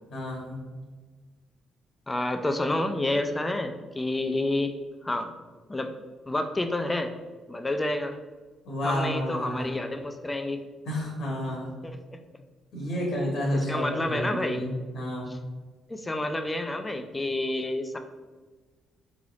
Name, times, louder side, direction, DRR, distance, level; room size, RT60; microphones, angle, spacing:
voice 1, 0.1-0.7 8.6-9.6 10.8-11.7 12.7-15.3, equal, 70° left, -2 dB, 1.0 m, -30 dB
voice 2, 2.1-4.7 5.0-5.3 5.7-5.9 6.3-7.1 7.5-8.2 8.8-10.6 11.8-12.2 13.7-14.6 15.3-15.4 15.9-18.0, left 1 dB, 20° left, 6 dB, 0.3 m, -29 dB
3.8 x 3.1 x 2.4 m, 1.3 s
hypercardioid pair, 50°, 0 cm